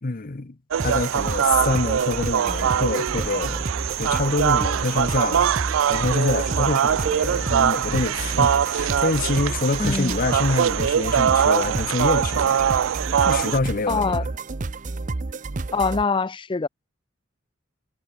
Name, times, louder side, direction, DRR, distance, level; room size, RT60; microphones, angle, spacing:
voice 1, 0.0-0.6 0.8-3.7 4.0-14.3, left 3 dB, 45° left, 0.9 m, -26 dB
sound 1, 0.7-13.6, right 8 dB, 90° right, 0.4 m, -23 dB
sound 2, 0.8-16.0, right 3 dB, 40° right, 0.7 m, -31 dB
voice 2, 9.8-10.2 13.9-14.2 15.7-16.7, left 4 dB, 25° left, 0.5 m, -24 dB
head